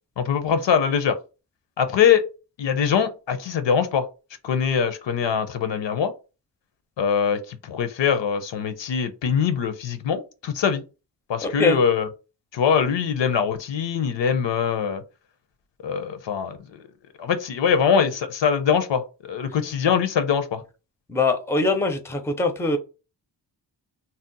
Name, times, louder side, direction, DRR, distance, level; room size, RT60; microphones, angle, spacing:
voice 1, 0.2-1.2 1.8-2.2 2.6-4.1 4.4-6.1 7.0-10.8 11.3-12.1 12.5-15.0 15.8-16.6 17.2-20.6, left 7 dB, 80° left, 0.6 m, -22 dB
voice 2, 11.4-11.8 21.1-22.8, left 3 dB, 5° left, 0.5 m, -22 dB
2.7 x 2.0 x 3.8 m
wide cardioid pair, 90°, 43 cm